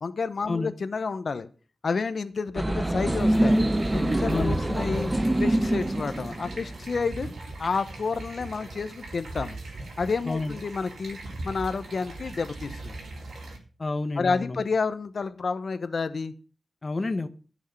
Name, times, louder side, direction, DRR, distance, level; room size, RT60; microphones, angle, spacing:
voice 1, 0.0-1.5 1.8-3.6 3.9-5.1 5.4-7.3 7.6-9.6 10.0-11.2 11.4-13.0 14.2-16.3, left 4 dB, 55° left, 11 dB, 0.9 m, -30 dB
sound 1, 2.5-7.0, right 1 dB, 15° right, 0.9 m, -25 dB
sound 2, 3.1-13.6, right 2 dB, 75° right, 3.8 m, -39 dB
voice 2, 13.8-14.6 16.8-17.3, left 3 dB, 35° left, 9 dB, 0.9 m, -29 dB
14.5 x 6.4 x 6.9 m, 0.38 s
wide cardioid pair, 125°, 0 cm